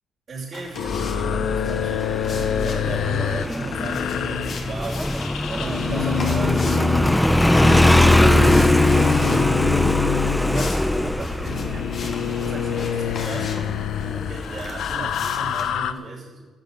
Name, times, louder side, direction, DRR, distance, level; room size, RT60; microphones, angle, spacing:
voice 1, 0.3-10.0 10.4-16.4, right 3 dB, 45° right, -7 dB, 5.7 m, -35 dB
sound 1, 0.5-15.7, left 4 dB, 50° left, 2.7 m, -40 dB
sound 2, 0.7-15.9, left 9 dB, 80° left, 0.7 m, -27 dB
Motorcycle, 0.9-15.2, left 1 dB, 5° left, 0.6 m, -22 dB
12.5 x 8.1 x 8.4 m, 1.3 s
cardioid pair, 90°, 0 cm